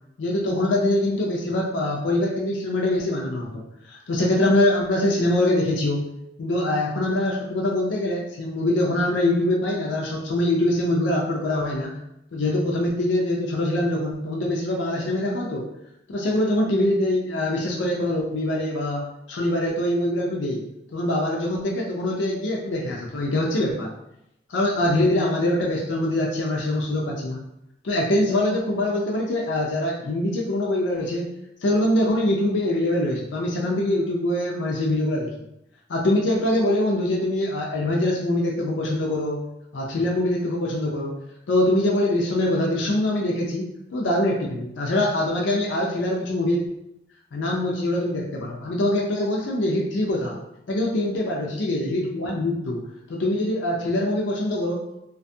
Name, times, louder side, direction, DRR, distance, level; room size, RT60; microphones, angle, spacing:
voice 1, 0.2-3.6 3.9-6.0 6.4-12.0 12.3-15.6 16.1-20.6 20.9-23.9 24.5-27.4 27.8-31.3 31.6-35.3 35.9-39.4 39.7-41.2 41.5-46.7 47.3-50.4 50.7-52.8 53.1-54.9, left 1 dB, 85° left, -2 dB, 0.4 m, -23 dB
2.5 x 2.3 x 2.6 m, 0.82 s
head